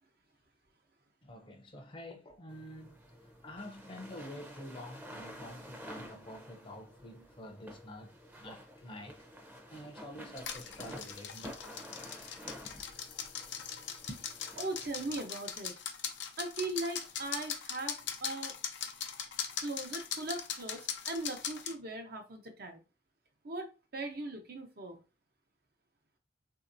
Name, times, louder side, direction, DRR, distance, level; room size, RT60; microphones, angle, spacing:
voice 1, 1.2-3.0 3.4-9.2 9.7-11.6 12.8-14.3, left 1 dB, 30° left, 0.6 m, -48 dB
sound 1, 2.5-15.3, equal, 10° right, 0.6 m, -50 dB
sound 2, 10.4-21.7, left 8 dB, 90° left, 0.6 m, -40 dB
voice 2, 14.6-15.7 16.4-17.9 18.2-18.5 19.6-20.8 21.1-22.8 23.4-23.7 23.9-25.0, right 2 dB, 60° right, 0.8 m, -39 dB
3.9 x 2.7 x 2.6 m
head